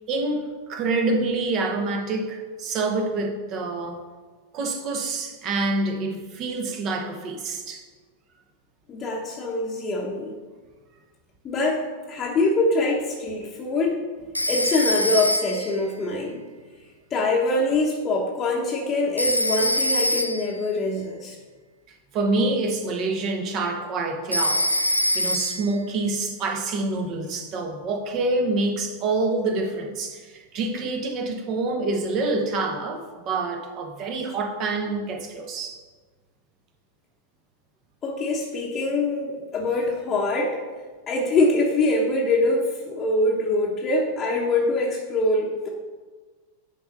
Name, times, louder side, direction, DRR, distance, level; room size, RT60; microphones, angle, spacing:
voice 1, 0.1-4.0 4.5-7.8 22.1-24.6 25.1-35.8, right 3 dB, 35° right, 4 dB, 1.1 m, -27 dB
voice 2, 8.9-10.3 11.4-14.0 14.5-16.5 17.1-21.4 38.0-40.6 41.1-45.7, left 2 dB, 25° left, -3 dB, 1.0 m, -24 dB
Telephone, 14.3-15.8 19.2-20.6 24.3-25.7, left 1 dB, 90° left, 0.4 m, -24 dB
10.5 x 3.5 x 5.4 m, 1.4 s
figure-of-eight pair, 90°, 0 cm